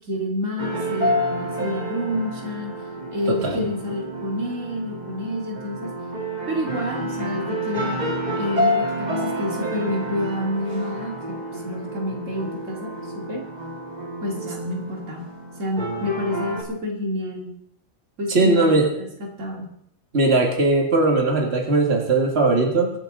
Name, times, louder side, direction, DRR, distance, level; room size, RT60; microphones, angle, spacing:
voice 1, 0.1-2.7 3.1-5.9 6.5-8.0 8.4-13.4 14.2-15.3 15.6-17.5 18.2-19.1 19.4-19.7, left 1 dB, 85° right, 0 dB, 2.7 m, -29 dB
sound 1, 0.6-16.6, equal, 35° right, 2.2 m, -29 dB
voice 2, 3.3-3.6 18.3-18.9 20.1-22.9, right 3 dB, 55° right, 1 dB, 2.3 m, -19 dB
24.0 x 9.1 x 3.9 m, 0.74 s
omnidirectional pair, 1.3 m